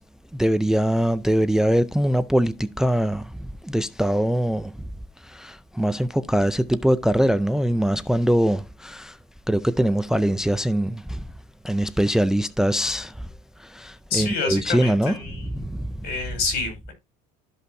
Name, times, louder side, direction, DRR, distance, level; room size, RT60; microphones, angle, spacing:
voice 1, 0.3-3.3 3.6-4.7 5.3-9.1 9.5-11.2 11.6-13.1 13.7-15.9, equal, 5° right, 0.4 m, -22 dB
voice 2, 14.1-15.6 16.0-16.9, left 4 dB, 55° left, 5.2 m, -28 dB
13.5 x 5.4 x 2.6 m
cardioid pair, 135°, 19 cm